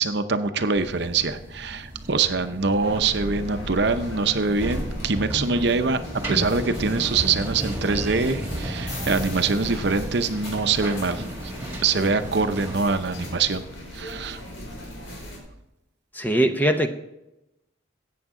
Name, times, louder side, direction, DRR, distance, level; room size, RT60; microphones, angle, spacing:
voice 1, 0.0-6.0 6.3-11.5 11.8-13.6 13.9-14.4, right 4 dB, 60° right, 9 dB, 0.7 m, -24 dB
sound 1, 0.8-12.8, right 1 dB, 10° right, 1.9 m, -34 dB
sound 2, 2.8-15.4, equal, 80° left, 4.6 m, -37 dB
voice 2, 16.1-16.9, right 1 dB, 10° left, 6 dB, 0.7 m, -21 dB
14.5 x 8.6 x 3.7 m, 0.91 s
head